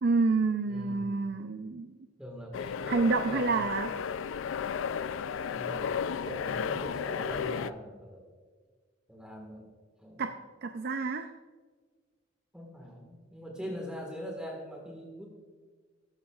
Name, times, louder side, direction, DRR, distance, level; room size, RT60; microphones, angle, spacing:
voice 1, 0.0-1.9 2.9-3.9 10.2-11.3, right 4 dB, 55° right, 8 dB, 0.5 m, -28 dB
voice 2, 0.7-1.3 2.2-3.6 5.5-8.2 9.1-9.7 10.0-10.2 12.5-15.3, equal, 5° right, -1 dB, 1.6 m, -42 dB
sound 1, 2.5-7.7, left 7 dB, 70° left, 0.4 m, -34 dB
15.0 x 13.0 x 2.4 m, 1.5 s
head